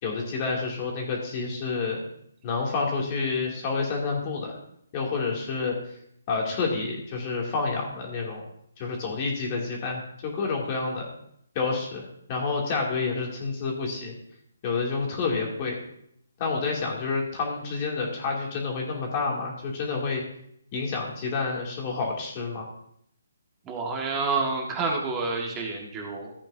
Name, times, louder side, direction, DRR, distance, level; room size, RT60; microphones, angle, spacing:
voice 1, 0.0-2.0 2.4-4.6 4.9-5.8 6.3-8.4 8.8-11.1 11.5-14.1 14.6-15.8 16.4-20.2 20.7-22.7, left 4 dB, 30° left, -1 dB, 2.7 m, -29 dB
voice 2, 23.6-26.3, right 4 dB, 15° right, -1 dB, 1.7 m, -28 dB
15.0 x 8.8 x 2.8 m, 0.70 s
hypercardioid pair, 155°, 0 cm